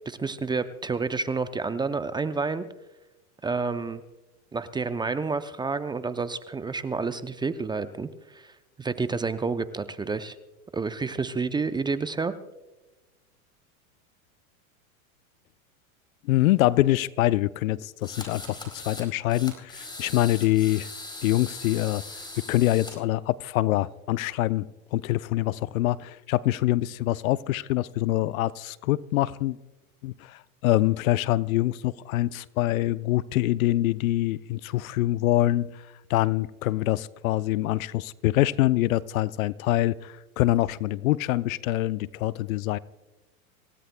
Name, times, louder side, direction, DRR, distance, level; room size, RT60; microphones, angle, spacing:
voice 1, 0.1-2.7 3.4-4.0 4.5-10.4 10.7-12.3, right 4 dB, 10° right, 12 dB, 0.5 m, -29 dB
voice 2, 16.2-20.9 21.2-22.0 22.5-24.7 24.9-29.6 30.0-42.8, left 16 dB, 70° left, 18 dB, 0.6 m, -25 dB
sound 1, 18.0-19.1 19.3-22.9, left 2 dB, 10° left, 4.4 m, -40 dB
27.0 x 16.5 x 2.2 m, 1.1 s
hypercardioid pair, 100°, 43 cm